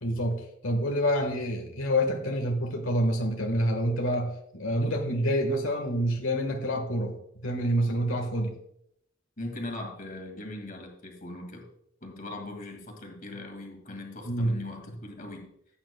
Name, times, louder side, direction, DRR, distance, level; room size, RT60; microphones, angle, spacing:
voice 1, 0.0-7.1 7.4-8.5 14.2-14.6, equal, 85° left, 2 dB, 1.4 m, -27 dB
voice 2, 9.4-11.7 12.0-15.5, left 2 dB, 45° left, 2 dB, 2.1 m, -40 dB
14.5 x 8.7 x 2.2 m, 0.72 s
head